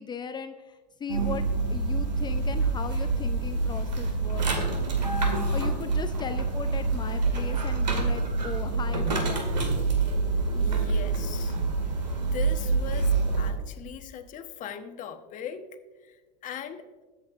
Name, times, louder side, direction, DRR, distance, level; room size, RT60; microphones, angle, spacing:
voice 1, 0.0-4.5 5.5-9.5, left 6 dB, 20° left, 9 dB, 0.5 m, -37 dB
sound 1, 1.1-13.5, right 3 dB, 90° right, 2.2 m, -26 dB
voice 2, 10.5-11.6 12.2-15.8 16.0-16.2 16.4-16.8, left 8 dB, 35° left, 7 dB, 1.1 m, -39 dB
21.5 x 8.0 x 2.5 m, 1.3 s
hypercardioid pair, 95°, 21 cm